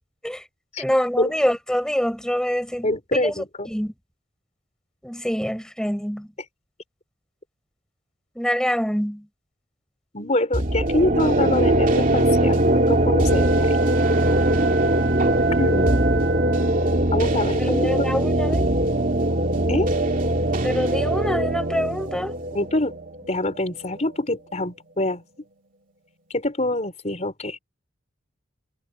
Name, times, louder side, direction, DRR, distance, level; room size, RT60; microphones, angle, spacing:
voice 1, 0.8-3.9 5.0-6.3 8.3-9.2 17.6-18.7 20.6-22.4, equal, 5° left, 4.6 m, -25 dB
voice 2, 2.8-3.7 10.1-13.8 15.6-15.9 17.1-18.1 19.7-19.9 22.5-22.9 23.3-25.2 26.3-27.6, left 1 dB, 35° left, 4.2 m, -25 dB
sound 1, 10.5-24.2, right 1 dB, 45° right, 2.7 m, -21 dB
sound 2, 13.2-17.2, right 3 dB, 65° right, 8.0 m, -31 dB
head